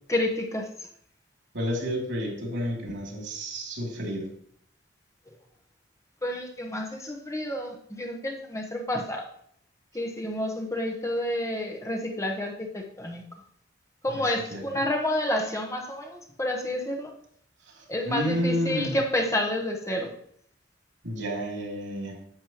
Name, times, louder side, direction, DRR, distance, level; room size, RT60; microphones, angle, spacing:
voice 1, 0.1-0.7 6.2-9.2 9.9-13.2 14.0-17.1 17.9-20.1, left 1 dB, 15° left, 1 dB, 1.1 m, -29 dB
voice 2, 1.5-4.3 14.1-14.6 17.7-19.0 21.0-22.2, equal, 75° right, -1 dB, 3.0 m, -31 dB
10.5 x 7.3 x 3.0 m, 0.65 s
head